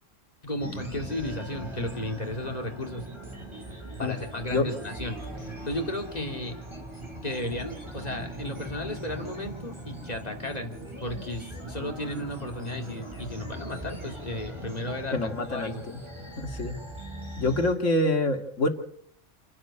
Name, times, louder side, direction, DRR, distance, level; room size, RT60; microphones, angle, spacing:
voice 1, 0.4-3.1 4.0-5.2 5.6-6.6 7.2-15.8, left 1 dB, 35° left, 3 dB, 2.9 m, -34 dB
sound 1, 0.6-17.7, right 1 dB, 20° right, 4.1 m, -40 dB
voice 2, 15.1-16.0 16.4-16.8 17.4-18.7, left 2 dB, 80° left, 5 dB, 2.6 m, -26 dB
28.0 x 11.0 x 8.8 m, 0.64 s
omnidirectional pair, 1.3 m